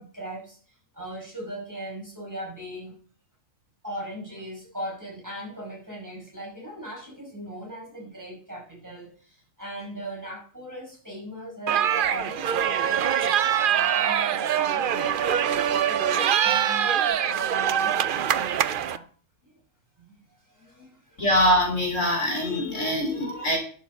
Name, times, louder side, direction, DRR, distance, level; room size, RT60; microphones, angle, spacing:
voice 1, 0.0-2.9 3.8-13.1 13.3-19.1 19.4-19.6 20.1-20.2 20.4-21.2, equal, 15° right, -2 dB, 5.4 m, -39 dB
sound 1, 11.7-19.0, right 9 dB, 55° right, 0.6 m, -24 dB
voice 2, 21.2-23.6, equal, 70° left, 0 dB, 4.3 m, -23 dB
12.0 x 7.5 x 5.2 m, 0.43 s
omnidirectional pair, 1.4 m